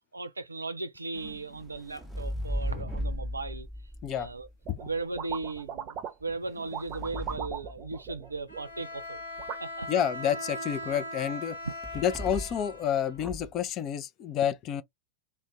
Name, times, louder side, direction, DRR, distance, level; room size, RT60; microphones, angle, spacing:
voice 1, 0.1-3.7 4.1-4.5 4.8-9.2 9.6-10.0 11.6-11.7, right 3 dB, 80° right, 0.5 m, -37 dB
sound 1, 1.1-5.2 6.2-8.5 11.8-12.7 13.1-13.6, equal, 5° left, 0.7 m, -37 dB
sound 2, 4.6-4.9 5.2-6.3 6.6-8.8 9.4-9.6, right 8 dB, 35° right, 0.6 m, -39 dB
Bowed string instrument, 8.5-13.5, left 1 dB, 80° left, 1.0 m, -40 dB
voice 2, 9.9-11.6 12.0-14.8, left 9 dB, 35° left, 0.4 m, -29 dB
2.5 x 2.1 x 3.3 m
figure-of-eight pair, 90°, 0 cm